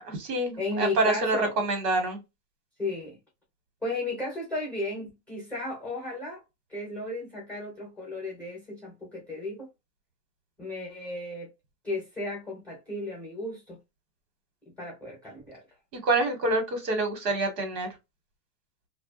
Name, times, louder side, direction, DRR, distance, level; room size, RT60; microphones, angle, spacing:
voice 1, 0.0-2.2 15.9-17.9, right 2 dB, 80° right, 1.4 m, -27 dB
voice 2, 0.6-1.5 2.8-3.2 3.8-6.4 6.7-9.7 10.6-11.5 11.8-13.8 14.8-15.6, left 2 dB, 5° left, 0.7 m, -34 dB
2.5 x 2.1 x 2.4 m
supercardioid pair, 160°, 49 cm